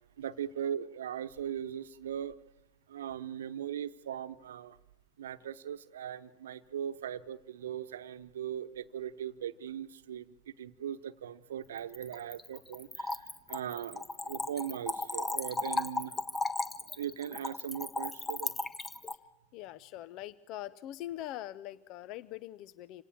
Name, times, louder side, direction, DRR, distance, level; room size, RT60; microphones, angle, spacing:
voice 1, 0.2-2.4 2.9-4.8 5.2-16.1 17.0-18.5, right 9 dB, 75° right, 12 dB, 1.0 m, -39 dB
Splash splatter / Trickle dribble, 11.8-19.2, left 3 dB, 15° left, 1.3 m, -36 dB
voice 2, 19.5-23.0, left 13 dB, 50° left, 17 dB, 0.7 m, -42 dB
27.0 x 18.5 x 7.3 m, 0.96 s
hypercardioid pair, 95°, 0 cm